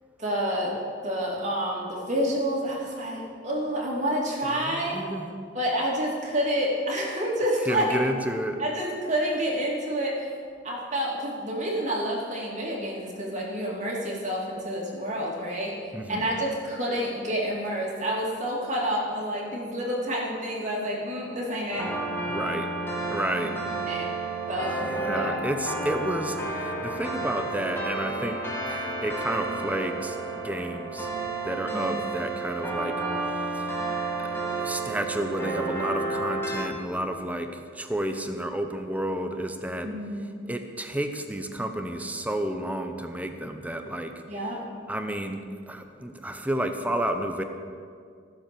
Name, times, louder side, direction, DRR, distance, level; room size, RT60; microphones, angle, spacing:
voice 1, 0.2-0.8 1.0-5.0 5.5-8.0 8.6-10.3 10.6-15.8 16.1-21.9 23.5-23.6 23.9-24.1 24.5-25.4 31.7-32.1 39.8-40.3 44.3-44.8, equal, 40° right, -3 dB, 2.8 m, -29 dB
voice 2, 4.7-5.4 7.7-8.6 15.9-16.3 22.3-22.7 23.1-23.5 24.8-26.4 26.8-28.4 28.7-30.2 30.4-31.1 31.4-33.0 33.5-33.6 34.2-39.9 40.5-44.1 44.9-45.4 45.7-47.4, right 1 dB, 10° right, 6 dB, 0.8 m, -31 dB
sound 1, 21.7-36.6, right 3 dB, 15° left, 2.2 m, -31 dB
15.0 x 7.5 x 6.9 m, 2.2 s
head